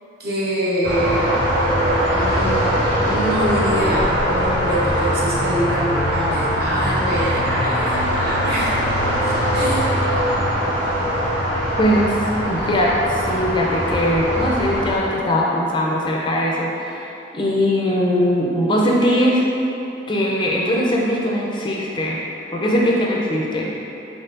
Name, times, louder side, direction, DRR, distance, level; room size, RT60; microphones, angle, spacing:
voice 1, 0.2-1.4 2.1-2.7 3.0-8.8 9.3-9.9, equal, 55° right, -6 dB, 0.8 m, -24 dB
sound 1, 0.8-15.0, equal, 80° right, 1.2 m, -21 dB
voice 2, 11.8-12.2 12.4-19.4 20.1-22.2 22.5-23.7, equal, 25° left, -3 dB, 0.4 m, -20 dB
4.5 x 4.4 x 2.5 m, 3.0 s
head